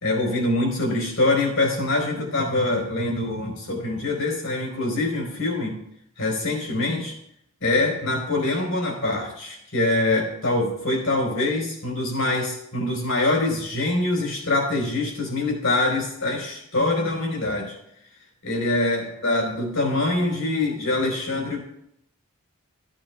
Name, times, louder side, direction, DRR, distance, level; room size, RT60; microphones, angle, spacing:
voice 1, 0.0-5.8 6.2-7.1 7.6-17.7 18.4-21.6, left 2 dB, 70° left, 0 dB, 4.3 m, -24 dB
15.0 x 9.0 x 2.4 m, 0.74 s
head